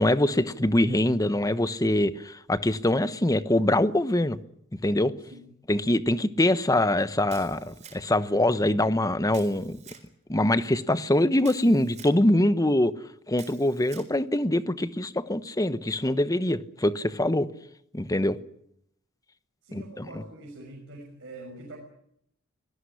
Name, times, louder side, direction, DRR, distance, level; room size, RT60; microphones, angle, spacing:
voice 1, 0.0-4.4 4.8-5.1 5.7-9.8 10.3-12.9 13.3-17.5 17.9-18.4 19.7-20.0, left 1 dB, 15° left, 1.1 m, -24 dB
Camera, 7.3-8.3 9.3-10.1 11.4-12.2 13.3-14.1, right 7 dB, 35° right, 4.2 m, -48 dB
voice 2, 19.6-21.8, right 2 dB, 60° right, 6.3 m, -44 dB
24.5 x 18.5 x 9.9 m
head